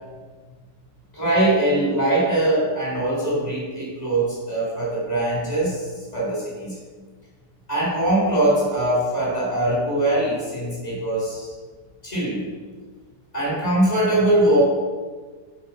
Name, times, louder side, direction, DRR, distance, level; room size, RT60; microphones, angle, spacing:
voice 1, 1.1-6.7 7.7-11.5 12.0-12.5 13.3-14.6, right 1 dB, 25° left, -7 dB, 0.8 m, -22 dB
10.5 x 4.8 x 5.3 m, 1.4 s
omnidirectional pair, 5.3 m